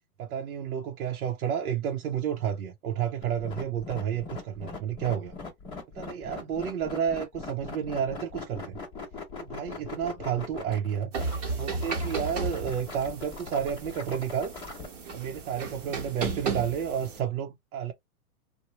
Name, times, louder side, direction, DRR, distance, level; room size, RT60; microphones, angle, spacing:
voice 1, 0.2-5.3 5.9-8.8 9.4-11.1 11.6-14.5 15.1-17.9, right 8 dB, 75° right, 0.6 m, -31 dB
sound 1, 3.2-14.9, left 4 dB, 15° left, 0.7 m, -40 dB
sound 2, 11.1-17.2, right 4 dB, 25° right, 0.9 m, -34 dB
2.9 x 2.1 x 2.8 m
hypercardioid pair, 165°, 43 cm